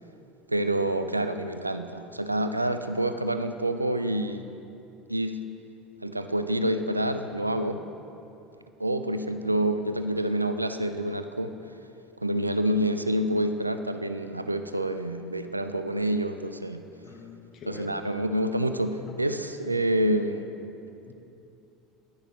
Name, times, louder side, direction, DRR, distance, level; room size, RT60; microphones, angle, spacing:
voice 1, 0.5-4.6 5.1-5.5 6.0-7.8 8.8-11.5 12.2-16.8 17.7-20.5, right 1 dB, 85° right, 9 dB, 0.3 m, -27 dB
voice 2, 17.0-17.9 21.0-21.1, left 5 dB, 40° left, 2 dB, 1.3 m, -44 dB
11.0 x 10.5 x 3.0 m, 2.8 s
figure-of-eight pair, 70°, 0 cm